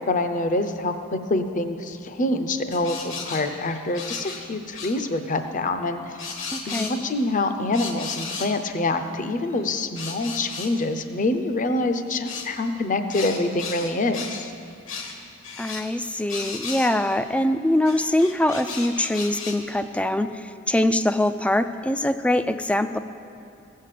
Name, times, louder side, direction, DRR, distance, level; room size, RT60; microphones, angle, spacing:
voice 1, 0.0-6.2 6.7-14.5, left 2 dB, 40° left, 8 dB, 0.7 m, -26 dB
sound 1, 2.7-4.4 4.7-5.0 6.2-7.3 7.7-8.5 9.5-10.7 12.3-12.5 13.1-14.4 14.9-15.2 15.4-15.9 16.3-17.1 17.8-19.6, left 4 dB, 70° left, 1.4 m, -35 dB
voice 2, 6.5-7.0 15.6-23.0, left 1 dB, 5° left, 11 dB, 0.3 m, -23 dB
15.5 x 6.5 x 7.6 m, 2.6 s
head